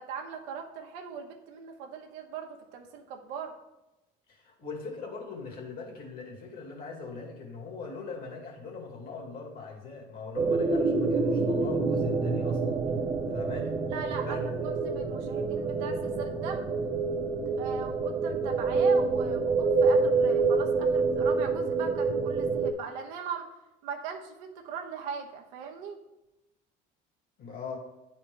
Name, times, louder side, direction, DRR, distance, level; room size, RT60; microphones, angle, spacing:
voice 1, 0.0-3.6 13.9-16.7 17.6-23.5 23.8-26.0, right 6 dB, 90° right, 2 dB, 1.0 m, -40 dB
voice 2, 4.3-12.8 13.3-13.7 14.3-14.7 27.4-27.8, left 4 dB, 50° left, 0 dB, 2.1 m, -41 dB
sound 1, 10.4-22.7, right 4 dB, 20° right, 0.6 m, -27 dB
9.7 x 4.3 x 3.3 m, 0.97 s
cardioid pair, 130°, 19 cm